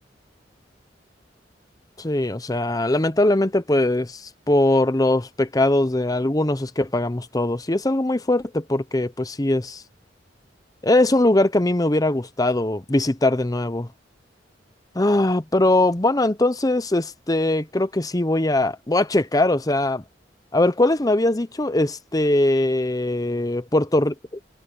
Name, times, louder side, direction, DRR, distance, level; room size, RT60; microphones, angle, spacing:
voice 1, 2.0-9.8 10.8-13.9 14.9-20.0 20.5-24.1, left 1 dB, 20° left, 0.8 m, -21 dB
head